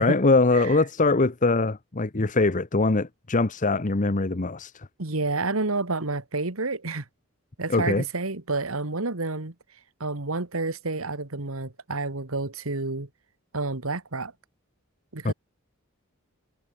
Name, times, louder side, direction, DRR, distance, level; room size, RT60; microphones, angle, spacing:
voice 1, 0.0-4.9 7.7-8.0 15.2-15.3, left 3 dB, 40° left, 1.0 m, -22 dB
voice 2, 5.0-7.0 7.6-9.5 10.0-13.1 13.5-14.3 15.1-15.3, right 3 dB, 80° right, 2.0 m, -29 dB
head